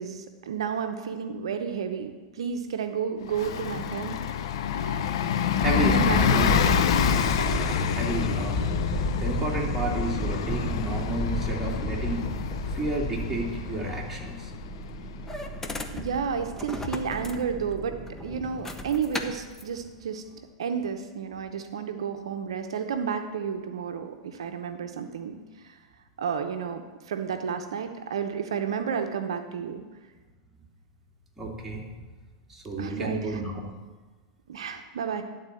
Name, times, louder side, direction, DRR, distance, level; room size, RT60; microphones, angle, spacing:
voice 1, 0.0-4.2 5.8-6.8 15.9-18.0 18.2-20.2 20.6-25.4 25.6-25.8 26.2-29.8 32.8-33.4 34.5-35.2, right 7 dB, 75° right, 6 dB, 0.7 m, -31 dB
Bus, 3.3-15.6, left 8 dB, 70° left, 0.6 m, -28 dB
sound 1, 5.6-19.6, left 1 dB, 15° left, 0.8 m, -32 dB
voice 2, 5.6-6.5 7.5-12.3 12.7-14.5 31.4-31.8 32.5-33.6, right 2 dB, 5° right, -4 dB, 2.3 m, -31 dB
11.0 x 3.9 x 7.6 m, 1.3 s
hypercardioid pair, 105°, 3 cm